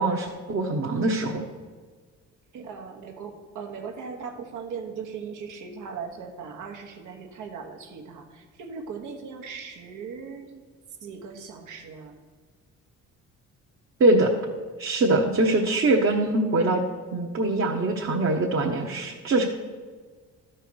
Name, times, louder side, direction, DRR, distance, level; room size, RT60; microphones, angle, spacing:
voice 1, 0.0-1.5 14.0-14.3 14.8-16.8 17.1-19.4, right 2 dB, 45° right, -1 dB, 1.1 m, -23 dB
voice 2, 2.5-10.6 11.0-12.1, right 5 dB, 80° right, 3 dB, 1.4 m, -38 dB
12.5 x 4.5 x 6.3 m, 1.5 s
cardioid pair, 90°, 30 cm